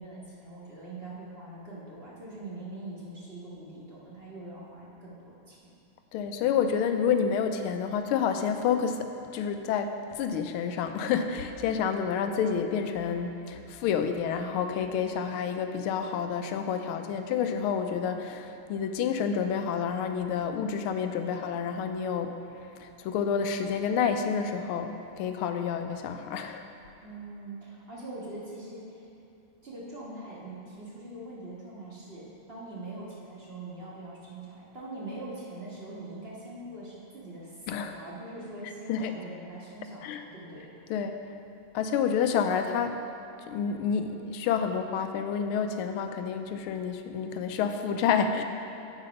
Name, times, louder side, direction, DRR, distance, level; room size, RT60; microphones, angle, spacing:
voice 1, 0.0-5.6 27.0-29.1 29.6-40.8, right 2 dB, 30° right, -6 dB, 1.6 m, -43 dB
voice 2, 6.1-22.3 22.8-26.6 37.7-37.9 38.9-39.1 40.0-40.2 40.9-41.2 41.7-43.0 43.5-48.4, left 7 dB, 85° left, 7 dB, 1.5 m, -29 dB
8.9 x 5.7 x 5.2 m, 2.8 s
omnidirectional pair, 2.3 m